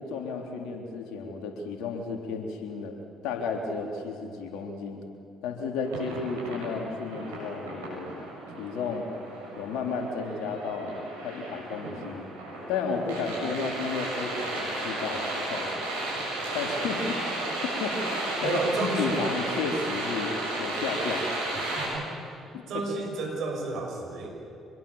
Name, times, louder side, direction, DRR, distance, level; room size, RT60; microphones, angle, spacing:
voice 1, 0.0-3.0 3.2-5.0 5.4-8.1 8.6-9.1 9.6-10.9 11.2-12.3 12.7-15.7 16.5-17.1 17.6-21.3 22.5-22.8, left 4 dB, 70° left, 2 dB, 3.7 m, -32 dB
sound 1, 5.8-21.9, right 1 dB, 85° right, 7.4 m, -34 dB
voice 2, 18.4-19.3 21.5-22.2 22.7-24.3, right 3 dB, 65° right, 1 dB, 6.3 m, -32 dB
26.0 x 21.5 x 7.3 m, 2.7 s
hypercardioid pair, 55°, 0 cm